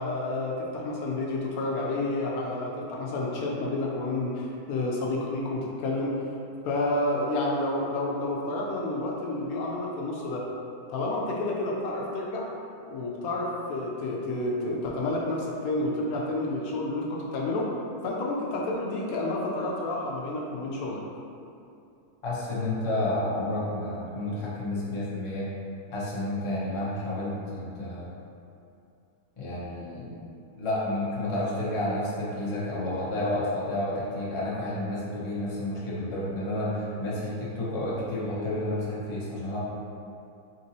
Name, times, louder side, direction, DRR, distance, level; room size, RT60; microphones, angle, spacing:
voice 1, 0.0-6.2 6.6-10.4 10.9-12.5 12.8-17.7 18.0-21.0, left 2 dB, 75° left, -2 dB, 1.0 m, -30 dB
voice 2, 22.2-25.5 25.9-28.2 29.4-30.1 30.6-39.6, left 1 dB, 30° left, -8 dB, 0.6 m, -30 dB
4.1 x 3.6 x 2.7 m, 2.6 s
omnidirectional pair, 1.6 m